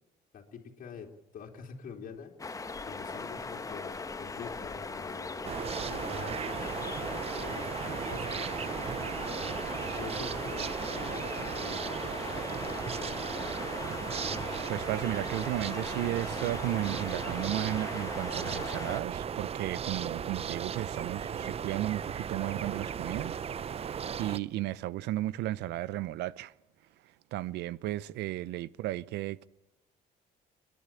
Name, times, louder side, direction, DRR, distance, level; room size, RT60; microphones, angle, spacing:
voice 1, 0.3-2.3 2.8-9.3 9.8-11.9 12.6-13.4, left 6 dB, 55° left, 3.0 m, -46 dB
sound 1, 2.4-19.0, left 4 dB, 20° left, 1.2 m, -39 dB
sound 2, 5.4-24.4, right 8 dB, 35° right, 0.6 m, -36 dB
voice 2, 14.7-23.4 23.6-26.5 27.3-29.5, right 15 dB, 85° right, 0.7 m, -34 dB
29.5 x 10.5 x 8.7 m
cardioid pair, 110°, 17 cm